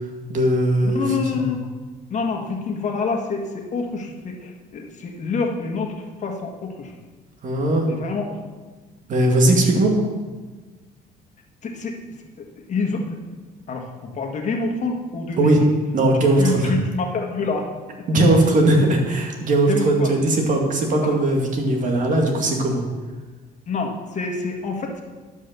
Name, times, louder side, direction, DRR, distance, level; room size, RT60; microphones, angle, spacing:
voice 1, 0.3-1.5 7.4-7.9 9.1-9.9 15.4-15.6 15.9-16.7 18.1-22.8, right 1 dB, 50° right, 1 dB, 2.3 m, -19 dB
voice 2, 0.8-1.6 2.1-5.9 6.2-6.9 7.9-8.4 11.6-12.0 12.7-13.2 13.7-15.7 16.4-17.7 19.7-20.1 21.0-21.1 23.7-25.0, left 4 dB, 45° left, 2 dB, 1.7 m, -27 dB
11.5 x 5.4 x 6.8 m, 1.3 s
cardioid pair, 110°, 17 cm